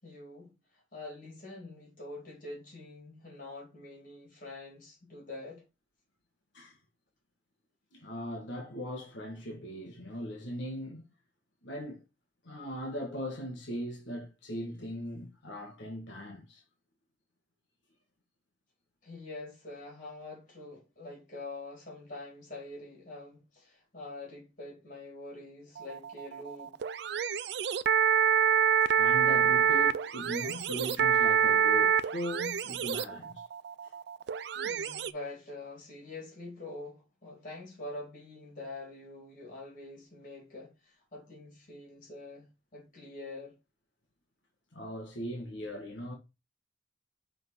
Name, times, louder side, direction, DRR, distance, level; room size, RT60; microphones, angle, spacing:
voice 1, 0.0-5.6 19.0-26.8 34.5-43.6, left 2 dB, 45° left, 3.8 m, -45 dB
voice 2, 7.9-11.0 11.6-12.0 12.4-16.6 29.0-33.4 33.8-33.9 44.7-46.1, equal, 70° left, 1.6 m, -39 dB
sound 1, 25.8-35.1, right 7 dB, 55° right, 0.4 m, -27 dB
6.0 x 3.9 x 4.5 m
head